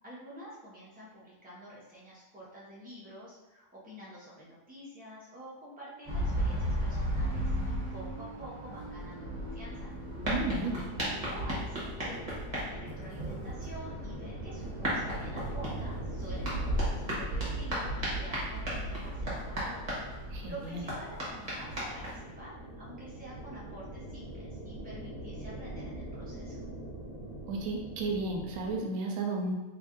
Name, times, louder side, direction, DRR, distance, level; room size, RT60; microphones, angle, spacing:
voice 1, 0.0-9.9 10.6-19.8 20.5-26.6, right 1 dB, 5° right, -8 dB, 0.8 m, -48 dB
sound 1, 6.1-22.2, equal, 30° right, 1.0 m, -35 dB
sound 2, 7.1-14.1, right 1 dB, 20° left, 1.1 m, -49 dB
sound 3, 8.9-28.8, right 1 dB, 60° left, 1.7 m, -45 dB
voice 2, 10.3-10.9 20.3-20.8 27.5-29.5, right 3 dB, 85° right, 1 dB, 1.0 m, -33 dB
3.1 x 2.6 x 3.6 m, 1.1 s
omnidirectional pair, 1.4 m